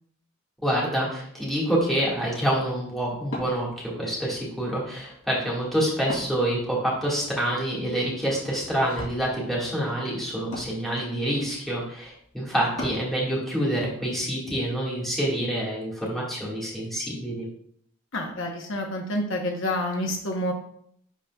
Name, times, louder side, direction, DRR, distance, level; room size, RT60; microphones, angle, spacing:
voice 1, 0.6-17.5, right 1 dB, ahead, -6 dB, 1.7 m, -27 dB
Wood, 1.9-13.1, left 1 dB, 80° left, 2.7 m, -43 dB
voice 2, 18.1-20.5, left 1 dB, 60° left, 2 dB, 0.9 m, -28 dB
10.5 x 4.1 x 2.3 m, 0.67 s
head